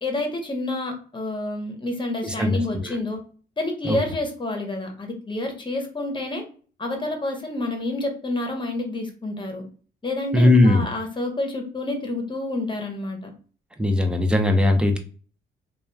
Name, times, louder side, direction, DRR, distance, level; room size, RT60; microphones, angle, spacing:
voice 1, 0.0-3.2 3.6-6.4 6.8-9.6 10.0-13.3, left 2 dB, 25° left, 3 dB, 0.9 m, -28 dB
voice 2, 2.2-3.0 3.8-4.0 10.3-10.8 13.8-15.0, left 1 dB, 5° right, 4 dB, 0.5 m, -19 dB
2.9 x 2.3 x 2.2 m, 0.40 s
cardioid pair, 90°, 20 cm